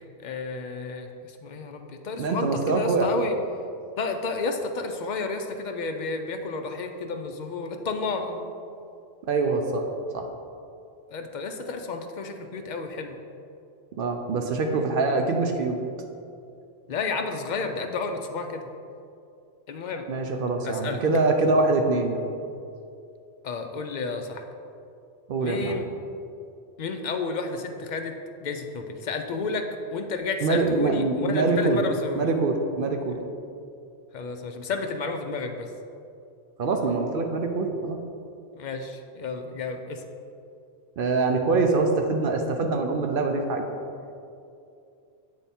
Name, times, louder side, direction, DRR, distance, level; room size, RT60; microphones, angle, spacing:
voice 1, 0.2-3.4 4.0-8.4 11.1-13.2 16.9-18.7 19.7-20.0 20.6-21.0 23.4-24.4 25.4-25.8 26.8-28.1 28.4-32.3 34.1-35.7 38.6-40.0, left 4 dB, 55° left, 5 dB, 0.5 m, -31 dB
voice 2, 2.2-3.1 9.3-9.8 10.1-10.3 14.0-15.8 20.1-22.2 25.3-25.8 30.4-31.8 32.2-33.2 36.6-38.0 41.0-43.6, right 3 dB, 60° right, 4 dB, 0.7 m, -24 dB
8.1 x 3.4 x 4.2 m, 2.5 s
omnidirectional pair, 1.1 m